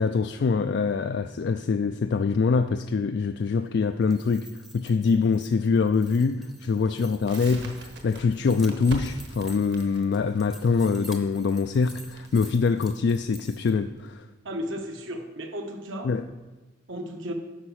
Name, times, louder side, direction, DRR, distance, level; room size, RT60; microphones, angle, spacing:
voice 1, 0.0-14.3 16.0-16.2, left 5 dB, 55° left, 9 dB, 0.3 m, -24 dB
sound 1, 3.9-13.7, right 1 dB, ahead, 0.7 m, -49 dB
Crackle, 7.3-14.1, right 1 dB, 55° right, 1.3 m, -42 dB
voice 2, 14.4-16.1 16.9-17.3, equal, 70° right, 3 dB, 1.3 m, -34 dB
9.8 x 5.3 x 6.4 m, 1.2 s
head